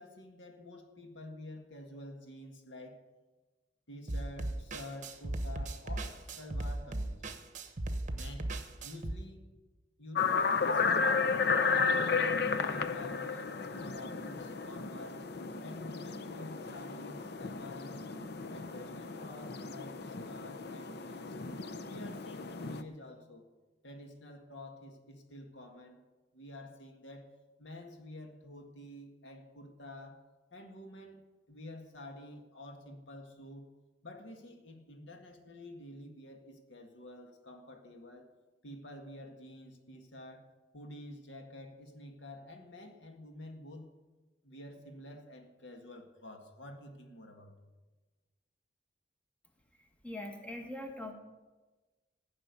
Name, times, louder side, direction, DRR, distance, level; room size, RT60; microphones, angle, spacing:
voice 1, 0.0-3.0 3.9-7.2 8.1-8.6 8.8-9.6 10.0-11.3 11.6-15.3 15.6-18.1 18.5-21.3 21.8-23.5 23.8-26.0 26.3-27.3 27.6-30.2 30.5-33.7 34.0-38.3 38.6-43.9 44.4-47.7, left 1 dB, 90° left, 4 dB, 1.8 m, -49 dB
sound 1, 4.1-9.1, right 1 dB, 45° right, 1.1 m, -37 dB
sound 2, 10.1-22.8, left 5 dB, 60° left, 0.7 m, -33 dB
voice 2, 49.8-51.1, left 1 dB, 10° left, 2 dB, 1.7 m, -42 dB
15.0 x 6.2 x 9.7 m, 1.2 s
head